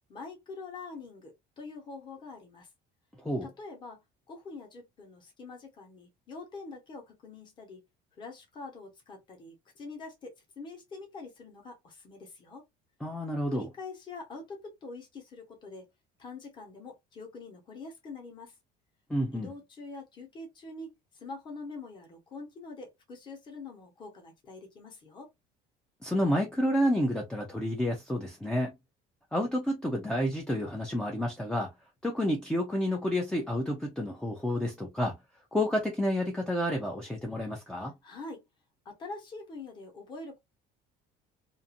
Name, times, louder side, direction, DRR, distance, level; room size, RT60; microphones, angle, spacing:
voice 1, 0.1-2.7 3.4-4.0 4.3-7.8 8.2-12.7 13.5-15.9 16.2-18.5 19.3-25.3 38.0-38.4 38.8-40.4, left 3 dB, 25° left, 1.0 m, -45 dB
voice 2, 13.0-13.7 19.1-19.5 26.0-28.7 29.3-31.7 32.0-35.2 35.5-37.9, equal, 5° left, 0.4 m, -30 dB
2.5 x 2.5 x 2.5 m
cardioid pair, 170°, 18 cm